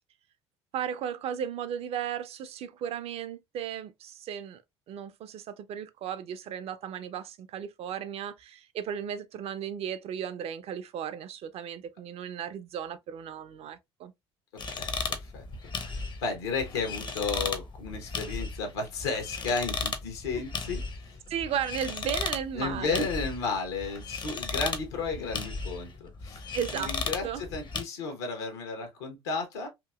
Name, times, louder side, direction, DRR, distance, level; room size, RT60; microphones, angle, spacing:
voice 1, 0.7-4.6 4.9-14.1 20.3-20.4 21.3-23.0 26.5-27.0 27.2-27.5, right 9 dB, 45° right, 0.4 m, -35 dB
sound 1, 14.6-27.8, left 4 dB, 35° left, 0.7 m, -36 dB
voice 2, 14.8-15.4 15.8-20.8 21.1-21.2 22.6-27.2 27.5-29.7, left 4 dB, 70° left, 0.9 m, -33 dB
2.8 x 2.6 x 2.3 m
figure-of-eight pair, 60°, 14 cm